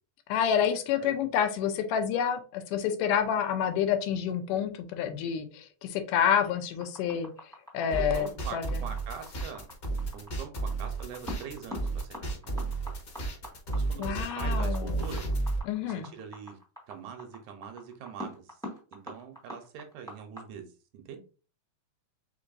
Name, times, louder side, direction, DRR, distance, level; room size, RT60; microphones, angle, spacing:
voice 1, 0.3-7.3 7.7-8.8 14.0-15.1 15.7-16.1, left 8 dB, 80° left, 8 dB, 2.1 m, -28 dB
voice 2, 1.0-1.3 7.9-9.7 10.1-12.2 12.4-12.7 13.7-15.2 15.8-16.6 16.9-18.6 18.9-20.7 20.9-21.2, right 7 dB, 75° right, 5 dB, 2.0 m, -43 dB
sound 1, 6.8-20.4, equal, 5° left, 0.5 m, -43 dB
sound 2, 7.9-15.6, right 2 dB, 50° left, 1.0 m, -32 dB
5.2 x 3.9 x 2.6 m, 0.36 s
omnidirectional pair, 3.8 m